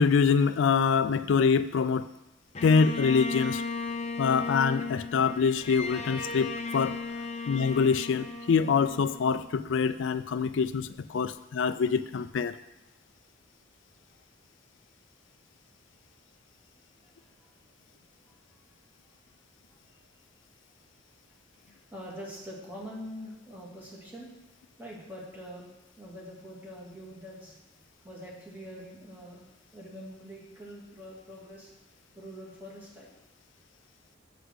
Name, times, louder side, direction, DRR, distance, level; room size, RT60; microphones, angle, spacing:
voice 1, 0.0-2.1 2.6-3.6 4.2-7.0 7.5-12.6, left 5 dB, 70° left, 13 dB, 0.4 m, -25 dB
Bowed string instrument, 2.5-9.8, left 3 dB, 35° left, 0.6 m, -36 dB
voice 2, 16.6-17.5 18.2-18.4 19.0-19.1 19.7-20.0 20.7-20.9 21.3-24.3 24.8-25.7 26.0-31.7 32.1-33.1, equal, 10° right, -5 dB, 2.7 m, -45 dB
8.0 x 6.0 x 7.9 m, 0.94 s
head